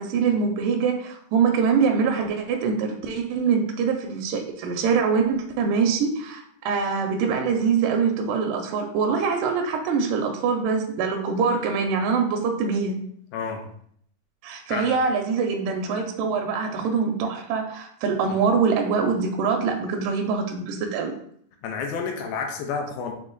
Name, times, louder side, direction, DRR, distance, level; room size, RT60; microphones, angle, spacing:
voice 1, 0.0-13.0 14.4-21.1, right 5 dB, 85° right, 3 dB, 2.0 m, -24 dB
voice 2, 13.3-13.7 14.7-14.9 18.3-18.4 21.6-23.1, left 5 dB, 80° left, 3 dB, 2.3 m, -30 dB
5.9 x 2.1 x 3.8 m, 0.66 s
omnidirectional pair, 4.3 m